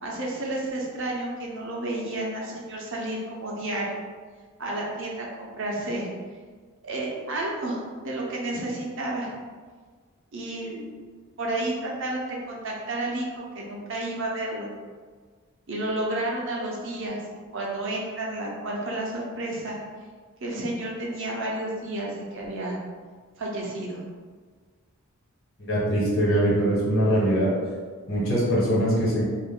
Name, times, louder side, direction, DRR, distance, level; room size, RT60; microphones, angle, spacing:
voice 1, 0.0-4.0 4.6-6.1 6.8-9.3 10.3-10.8 11.4-14.7 15.7-17.2 17.5-19.8 20.4-22.8 23.4-24.0, right 1 dB, 60° right, -3 dB, 0.6 m, -31 dB
voice 2, 25.6-27.5 28.1-29.2, right 1 dB, 65° left, -6 dB, 1.2 m, -22 dB
2.5 x 2.2 x 3.5 m, 1.5 s
head